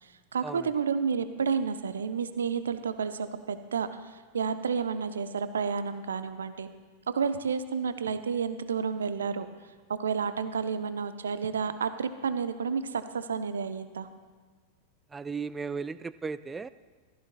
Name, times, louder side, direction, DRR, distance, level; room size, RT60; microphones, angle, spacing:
voice 1, 0.0-6.7 7.1-9.5 9.9-14.1, right 6 dB, 70° right, 11 dB, 0.6 m, -31 dB
voice 2, 15.1-16.7, right 5 dB, 15° right, 15 dB, 0.3 m, -36 dB
15.5 x 13.5 x 2.2 m, 1.5 s
figure-of-eight pair, 90°, 0 cm